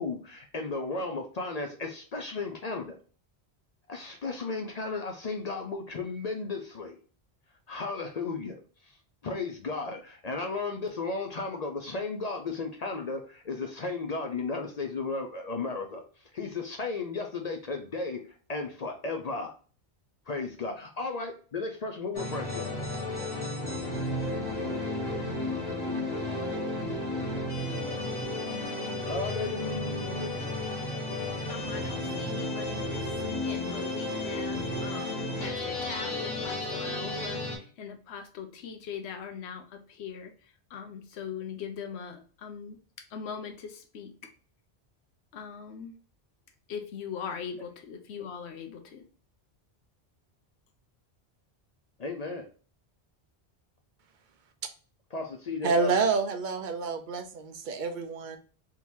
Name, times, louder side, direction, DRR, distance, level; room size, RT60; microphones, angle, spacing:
voice 1, 0.0-3.0 3.9-7.0 7.7-9.0 9.2-19.5 20.3-22.7 29.0-30.4 52.0-52.5 55.1-55.9, left 3 dB, 50° left, 4 dB, 0.5 m, -34 dB
sound 1, 22.1-37.6, left 2 dB, 20° left, 1.2 m, -33 dB
voice 2, 31.5-42.8 43.1-44.1 45.3-45.9 46.7-49.0, left 6 dB, 90° left, 5 dB, 0.9 m, -41 dB
voice 3, 55.6-58.4, right 4 dB, 55° right, 7 dB, 0.7 m, -28 dB
3.7 x 3.0 x 2.6 m, 0.40 s
omnidirectional pair, 1.1 m